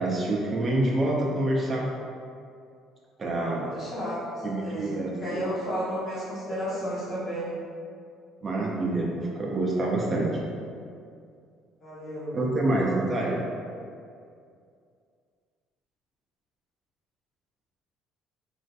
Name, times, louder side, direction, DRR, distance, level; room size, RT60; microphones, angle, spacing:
voice 1, 0.0-1.9 3.2-3.7 4.4-5.5 6.5-6.6 8.4-10.4 12.3-13.5, right 2 dB, 35° right, -3 dB, 0.4 m, -27 dB
voice 2, 3.3-7.6 11.8-12.4, equal, 45° left, -8 dB, 1.1 m, -33 dB
3.0 x 2.4 x 2.5 m, 2.3 s
cardioid pair, 100°, 0 cm